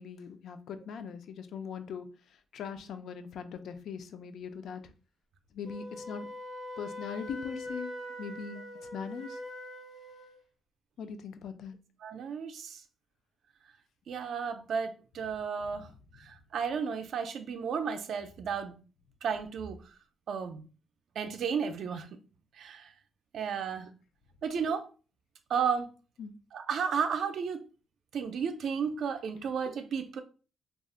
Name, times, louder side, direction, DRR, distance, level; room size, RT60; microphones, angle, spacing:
voice 1, 0.0-2.1 2.5-4.8 5.5-6.3 6.8-7.9 8.2-8.6 8.9-9.4 11.0-11.8 15.7-15.8 26.2-26.3, left 6 dB, 65° left, 0.3 m, -40 dB
Wind instrument woodwind instrument, 5.6-10.4, left 1 dB, 85° left, 1.1 m, -42 dB
voice 2, 12.0-12.8 14.1-15.9 16.2-18.8 19.2-19.8 20.3-20.6 21.2-22.1 22.6-22.9 23.3-23.9 24.4-24.9 25.5-25.9 26.5-27.7 28.1-30.2, right 6 dB, 55° right, 0.3 m, -33 dB
2.3 x 2.0 x 3.7 m
cardioid pair, 165°, 0 cm